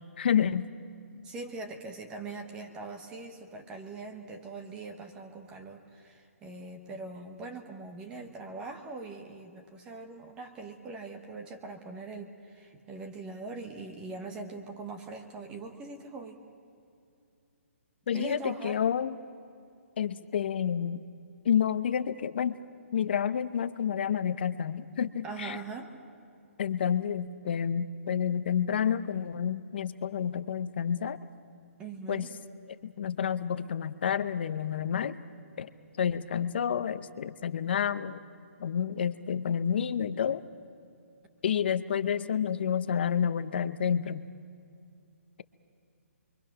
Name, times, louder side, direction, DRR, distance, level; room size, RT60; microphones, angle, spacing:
voice 1, 0.2-0.7 18.1-19.1 20.0-21.0 21.4-22.6 22.9-25.6 26.6-31.2 32.1-32.3 32.8-35.2 35.6-35.7 36.0-38.2 38.6-40.4 41.4-44.3, left 8 dB, 45° left, 13 dB, 0.8 m, -29 dB
voice 2, 1.2-16.4 18.1-18.8 25.2-25.9 31.8-32.3, right 3 dB, 10° right, 5 dB, 1.1 m, -42 dB
28.0 x 23.5 x 6.0 m, 2.5 s
hypercardioid pair, 170°, 8 cm